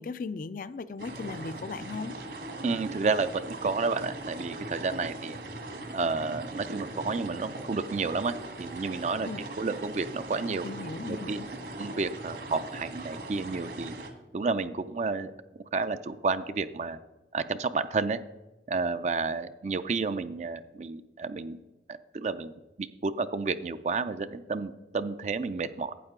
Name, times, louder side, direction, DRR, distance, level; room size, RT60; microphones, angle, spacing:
voice 1, 0.0-2.1 9.2-9.4 10.6-11.5, left 4 dB, 50° left, 14 dB, 0.4 m, -37 dB
sound 1, 1.0-14.1, right 2 dB, 70° right, 1.6 m, -40 dB
voice 2, 2.6-5.4 5.9-9.3 9.6-10.7 11.1-11.4 11.7-13.9 14.3-15.3 15.7-17.0 17.3-18.2 18.7-21.6 21.9-22.5 22.8-25.9, right 4 dB, 40° right, 11 dB, 0.4 m, -31 dB
12.0 x 8.9 x 3.7 m, 1.1 s
head